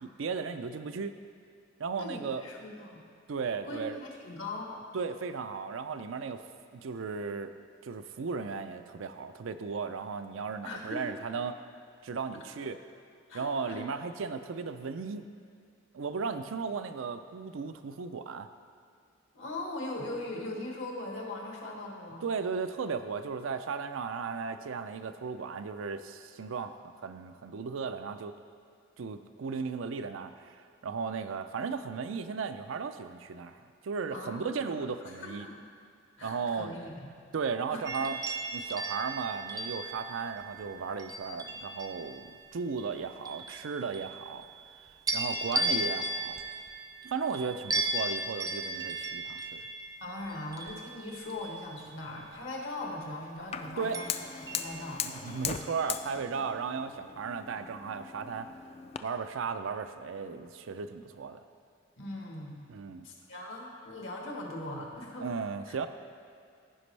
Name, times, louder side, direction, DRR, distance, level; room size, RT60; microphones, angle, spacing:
voice 1, 0.0-1.2 1.8-2.4 3.3-4.0 4.9-6.4 6.7-7.5 7.8-11.6 12.0-12.8 13.3-15.3 15.9-18.5 22.2-28.4 29.0-35.5 36.2-36.7 37.3-38.2 38.5-42.2 42.5-44.4 45.1-46.4 47.0-49.6 53.8-54.0 55.0-58.5 59.0-61.4 62.7-63.1 65.2-65.9, right 5 dB, 85° right, 9 dB, 0.4 m, -35 dB
voice 2, 2.0-3.0 3.6-4.8 10.6-11.2 12.3-12.4 13.3-13.8 19.3-22.2 34.1-35.6 36.2-37.1 37.7-37.8 50.0-54.1 54.5-55.1 56.3-56.4 62.0-62.7 63.0-65.3 65.7-65.8, left 2 dB, 75° left, -1 dB, 1.5 m, -40 dB
sound 1, 37.9-42.2 42.8-44.7 45.1-52.0 53.9-55.3 55.8-56.0, right 2 dB, 20° right, 0.5 m, -36 dB
Fire, 53.5-59.0, left 8 dB, 30° left, 0.3 m, -39 dB
15.5 x 5.2 x 3.3 m, 2.3 s
head